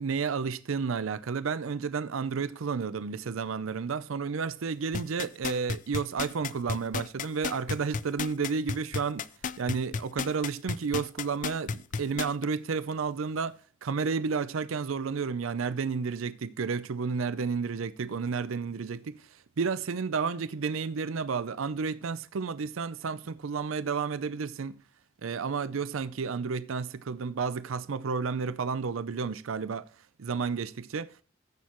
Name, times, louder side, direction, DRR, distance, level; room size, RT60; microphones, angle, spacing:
voice 1, 0.0-9.3 9.6-24.8 25.2-29.9 30.2-31.2, right 5 dB, 80° right, 0.5 m, -31 dB
sound 1, 4.9-12.4 12.9-13.0, left 5 dB, 40° left, 0.4 m, -32 dB
15.0 x 6.5 x 3.0 m
head